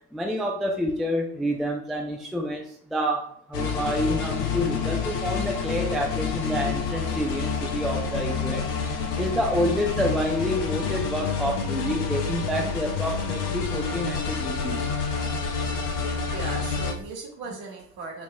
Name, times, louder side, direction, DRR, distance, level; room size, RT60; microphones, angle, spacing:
voice 1, 0.1-14.8, equal, ahead, 0 dB, 0.4 m, -28 dB
sound 1, 3.5-16.9, left 5 dB, 80° left, 0.7 m, -28 dB
voice 2, 16.3-18.2, right 4 dB, 50° right, 0 dB, 1.3 m, -37 dB
5.2 x 3.0 x 2.2 m, 0.65 s
figure-of-eight pair, 60°, 48 cm